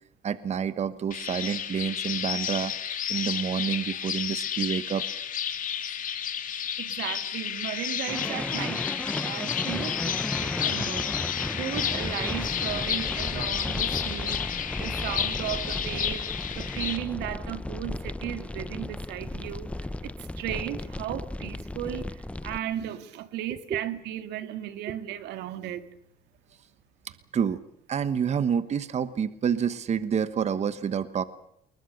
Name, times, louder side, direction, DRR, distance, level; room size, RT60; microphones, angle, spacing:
voice 1, 0.2-2.7 3.1-5.0 23.7-23.8 27.3-27.6 27.9-31.2, right 7 dB, 40° right, 1.3 m, -28 dB
sound 1, 1.1-17.0, left 9 dB, 50° left, 3.1 m, -31 dB
voice 2, 6.8-11.2 11.5-14.4 14.7-16.3 16.5-25.9, right 12 dB, 85° right, 2.2 m, -36 dB
sound 2, 8.1-22.6, left 1 dB, 5° left, 0.9 m, -34 dB
28.5 x 22.0 x 6.6 m
cardioid pair, 110°, 17 cm